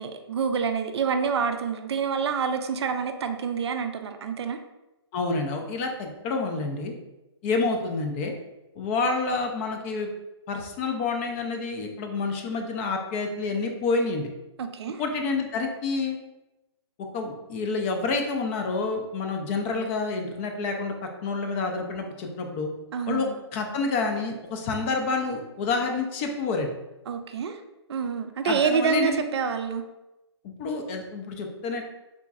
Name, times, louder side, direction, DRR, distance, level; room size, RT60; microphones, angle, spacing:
voice 1, 0.0-4.6 14.6-15.0 22.9-23.4 27.1-27.6 27.9-29.8, right 6 dB, 65° right, 7 dB, 0.4 m, -27 dB
voice 2, 5.1-6.9 7.4-8.4 8.8-10.1 10.5-14.3 15.0-16.2 17.1-20.9 21.2-22.7 23.1-26.7 28.4-29.2 30.6-31.8, left 4 dB, 25° left, 3 dB, 0.4 m, -28 dB
3.6 x 2.9 x 2.4 m, 1.0 s
hypercardioid pair, 135°, 15 cm